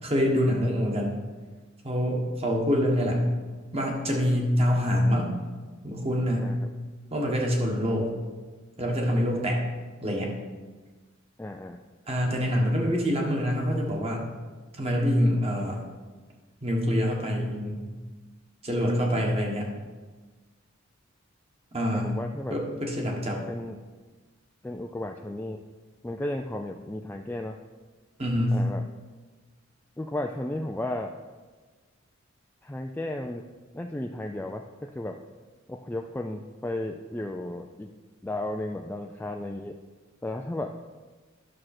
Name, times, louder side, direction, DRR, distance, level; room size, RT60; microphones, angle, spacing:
voice 1, 0.0-1.1 1.8-3.2 3.7-5.3 5.8-6.5 7.1-8.1 8.8-9.6 10.0-10.3 12.1-14.2 14.8-15.8 16.6-17.9 18.6-19.7 21.7-22.2 22.5-23.4 28.2-28.6, equal, 30° right, 0 dB, 1.5 m, -25 dB
voice 2, 11.4-11.8 21.9-22.6 23.5-23.8 24.6-25.6 26.0-27.6 28.5-28.8 30.0-31.1 32.6-33.4 33.7-35.2 35.7-37.9 38.2-39.8 40.2-40.7, left 1 dB, 10° left, 2 dB, 0.3 m, -34 dB
11.0 x 6.4 x 4.3 m, 1.4 s
head